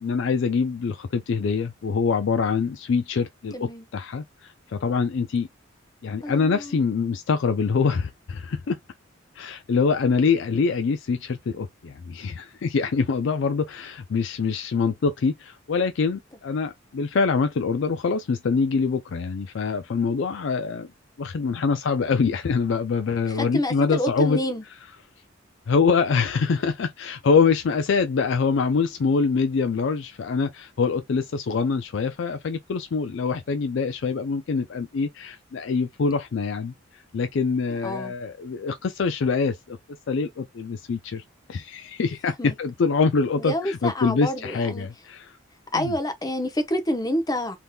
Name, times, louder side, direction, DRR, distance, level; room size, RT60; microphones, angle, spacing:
voice 1, 0.0-5.5 6.0-8.8 9.3-20.9 21.2-24.4 25.7-39.8 40.1-41.2 41.5-45.4 45.7-45.9, left 5 dB, 65° left, 0.4 m, -24 dB
voice 2, 3.5-3.9 6.2-6.8 23.3-24.6 37.8-38.1 42.4-42.5 43.4-44.9 45.7-47.6, equal, 20° left, 0.7 m, -28 dB
3.5 x 2.8 x 2.3 m
head